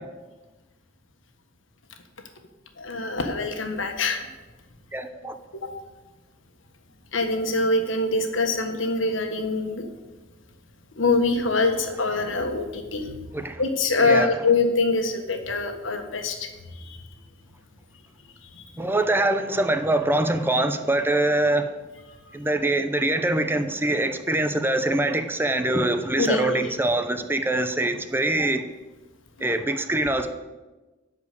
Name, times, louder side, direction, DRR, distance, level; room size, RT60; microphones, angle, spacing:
voice 1, 2.8-4.3 5.6-5.7 7.1-9.8 11.0-13.1 13.6-16.5 26.2-26.7, left 3 dB, 85° left, 5 dB, 1.4 m, -24 dB
voice 2, 4.9-5.4 13.3-13.6 14.0-14.4 18.8-21.7 22.3-28.6 29.4-30.3, right 2 dB, 10° right, 8 dB, 0.6 m, -24 dB
11.5 x 5.0 x 8.3 m, 1.2 s
head